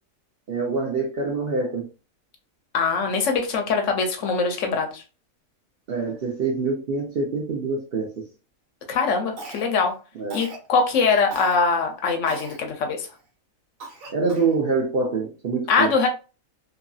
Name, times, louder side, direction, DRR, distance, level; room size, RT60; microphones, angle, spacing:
voice 1, 0.5-1.9 5.9-8.2 10.2-10.5 14.1-15.9, right 4 dB, 55° right, -1 dB, 0.7 m, -25 dB
voice 2, 2.7-5.0 8.9-10.0 10.3-13.1 15.7-16.1, left 4 dB, 70° left, 4 dB, 1.0 m, -22 dB
Cough, 9.4-9.9 10.3-10.7 11.3-11.6 12.3-12.6 13.1-13.2 13.8-14.6, right 3 dB, 75° right, 1.3 m, -39 dB
2.9 x 2.6 x 2.3 m, 0.33 s
omnidirectional pair, 1.4 m